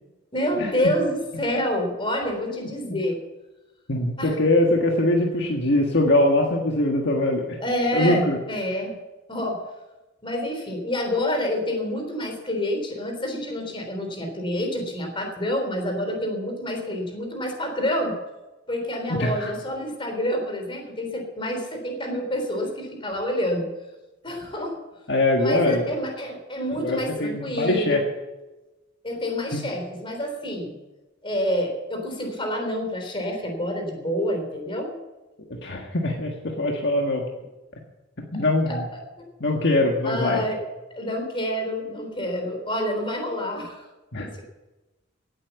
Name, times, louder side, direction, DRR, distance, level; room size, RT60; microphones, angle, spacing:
voice 1, 0.3-3.2 4.2-4.4 7.6-8.9 9.3-9.6 10.2-18.2 18.7-23.7 24.2-24.8 25.4-28.1 29.0-30.8 31.2-34.9 38.7-39.0 40.0-40.6 40.9-43.9 44.2-44.3, left 1 dB, 25° left, 3 dB, 3.6 m, -28 dB
voice 2, 3.9-7.6 7.9-8.4 19.1-19.5 25.1-25.9 26.8-28.0 35.6-37.3 38.3-38.8 39.4-40.4 44.1-44.3, left 1 dB, 55° left, 1 dB, 1.6 m, -22 dB
17.5 x 8.7 x 7.1 m, 1.1 s
head